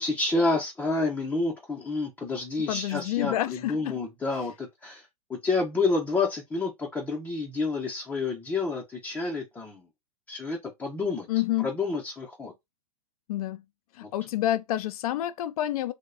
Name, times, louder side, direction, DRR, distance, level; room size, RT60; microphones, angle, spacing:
voice 1, 0.0-9.8 10.3-11.3 11.6-12.5 14.0-14.1, left 3 dB, 10° left, 0.5 m, -29 dB
voice 2, 2.6-3.9 11.3-11.7 13.3-13.6 13.9-15.9, left 13 dB, 70° left, 0.4 m, -28 dB
2.8 x 2.1 x 2.3 m
hypercardioid pair, 130°, 19 cm